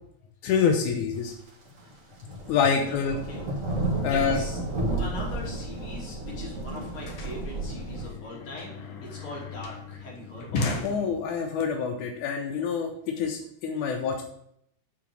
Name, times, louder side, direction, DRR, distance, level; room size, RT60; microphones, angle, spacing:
voice 1, 0.4-1.3 2.5-3.2 4.0-4.4 10.8-12.9 13.2-14.2, left 6 dB, 85° left, 3 dB, 2.3 m, -26 dB
sound 1, 1.7-1.8 2.1-8.0, right 2 dB, 35° right, 1.5 m, -32 dB
voice 2, 2.7-3.5 4.1-4.6 5.0-8.7 9.0-10.8, left 1 dB, 45° left, -3 dB, 3.6 m, -41 dB
sound 2, 6.1-6.2 6.4-11.6, left 3 dB, 60° left, 2.3 m, -36 dB
8.9 x 4.8 x 7.4 m, 0.72 s
omnidirectional pair, 3.5 m